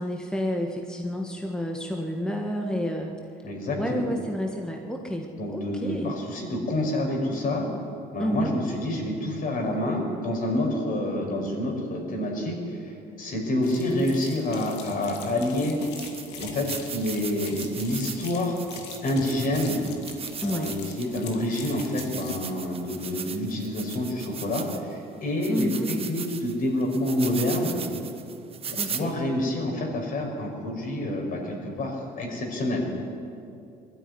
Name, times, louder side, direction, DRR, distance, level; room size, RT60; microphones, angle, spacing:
voice 1, 0.0-3.1 3.8-6.1 8.2-8.5 20.4-20.8 25.5-26.1 28.8-29.1, equal, 5° left, 2 dB, 1.6 m, -30 dB
voice 2, 3.4-4.1 5.4-7.7 8.1-15.8 16.4-18.6 19.0-19.8 20.4-27.8 28.7-32.8, left 1 dB, 55° left, 1 dB, 5.4 m, -28 dB
sound 1, 13.6-22.4, left 5 dB, 90° left, 2.5 m, -42 dB
sound 2, 14.7-14.8 15.4-15.5 15.8-25.0 25.4-29.0, right 6 dB, 35° right, 1.4 m, -38 dB
20.5 x 13.0 x 9.8 m, 2.6 s
cardioid pair, 110°, 17 cm